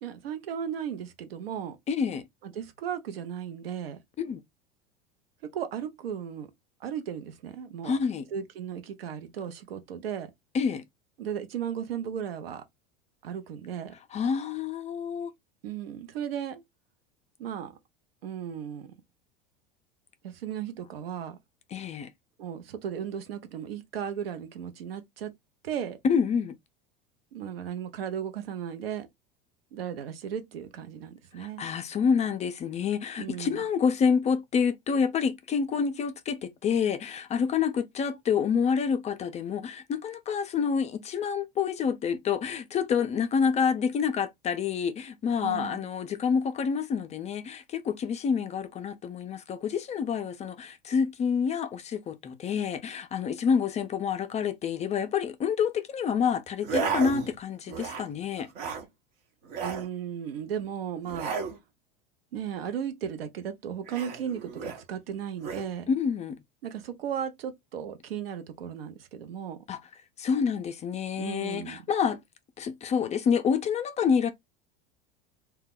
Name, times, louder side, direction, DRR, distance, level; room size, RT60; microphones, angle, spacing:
voice 1, 0.0-1.8 2.4-4.0 5.5-6.5 6.8-8.0 8.3-10.3 11.2-12.6 13.2-13.9 15.6-16.6 17.4-17.8 18.2-18.9 20.2-21.4 22.4-25.3 25.6-26.0 27.3-29.1 29.7-31.7 33.2-33.6 45.4-45.9 59.6-61.3 62.3-65.9 66.6-69.6 71.2-71.9, right 8 dB, 85° right, 0.6 m, -35 dB
voice 2, 1.9-2.2 4.2-4.4 7.8-8.2 10.5-10.8 14.1-15.3 21.7-22.1 26.0-26.6 31.4-58.5 65.9-66.4 69.7-69.8 70.2-72.2 72.6-74.3, left 6 dB, 25° left, 0.3 m, -28 dB
sound 1, 56.6-57.4 57.7-58.1 58.4-58.9 59.4-59.9 61.1-61.6 63.9-64.8 65.4-65.7, right 5 dB, 65° right, 0.9 m, -33 dB
2.2 x 2.0 x 3.4 m
hypercardioid pair, 90°, 29 cm